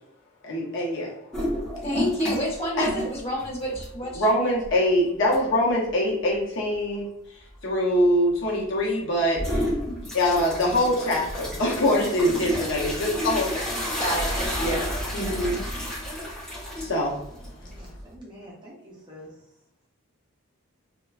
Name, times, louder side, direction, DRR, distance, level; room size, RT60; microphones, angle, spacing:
voice 1, 0.4-1.1 2.8-2.9 4.2-7.0 7.6-9.7 10.1-13.7 14.6-14.8 15.1-15.6 16.8-17.1, left 1 dB, 55° left, -4 dB, 0.8 m, -23 dB
sound 1, 1.3-2.5 2.8-4.2 4.6-4.7 5.3-5.4 9.3-18.1, equal, 5° left, 0.8 m, -31 dB
voice 2, 1.8-4.6 11.9-12.1 14.0-14.8, equal, 25° left, -5 dB, 1.1 m, -29 dB
voice 3, 17.6-19.3, equal, 20° right, -4 dB, 0.5 m, -46 dB
3.0 x 2.2 x 2.3 m, 0.83 s
head